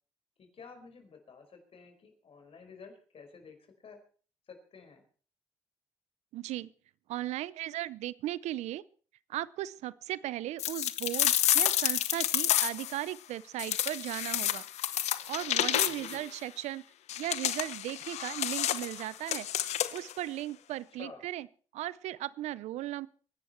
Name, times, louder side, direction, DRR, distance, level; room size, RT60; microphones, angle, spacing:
voice 1, 0.4-3.6 3.8-4.0 4.5-5.0 15.9-16.2 21.0-21.2, left 5 dB, 55° left, 6 dB, 5.2 m, -51 dB
voice 2, 6.3-6.7 7.1-8.8 9.3-14.6 15.3-16.8 17.2-19.5 19.9-21.5 21.7-23.1, right 14 dB, 80° right, 20 dB, 0.6 m, -37 dB
sound 1, 10.6-13.0 13.6-16.2 17.1-20.1, left 12 dB, 75° left, 1.0 m, -30 dB
24.0 x 11.0 x 4.5 m, 0.41 s
supercardioid pair, 60°, 11 cm